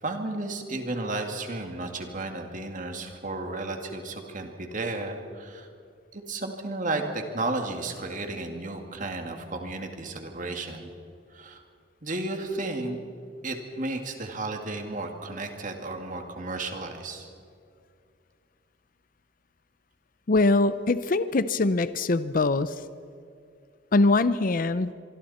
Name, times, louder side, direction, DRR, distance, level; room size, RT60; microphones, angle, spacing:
voice 1, 0.0-5.7 6.1-10.9 11.3-11.6 12.0-13.0 13.4-17.3, right 2 dB, 45° right, 4 dB, 2.4 m, -33 dB
voice 2, 20.3-22.8 23.9-24.9, left 2 dB, 50° left, 14 dB, 0.6 m, -23 dB
25.0 x 24.0 x 4.3 m, 2.3 s
head